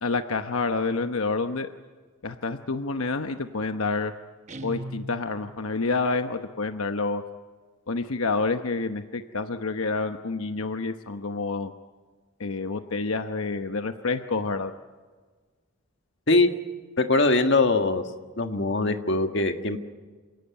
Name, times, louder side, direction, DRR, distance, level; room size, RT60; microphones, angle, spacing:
voice 1, 0.0-1.7 2.2-4.1 4.6-7.2 7.9-11.7 12.4-14.7, left 3 dB, 80° left, 7 dB, 1.0 m, -28 dB
Guitar, 4.5-5.7, right 1 dB, 35° right, 1.0 m, -39 dB
voice 2, 17.0-18.0 18.4-19.8, left 2 dB, 55° left, 6 dB, 1.7 m, -22 dB
28.0 x 17.5 x 9.7 m, 1.4 s
head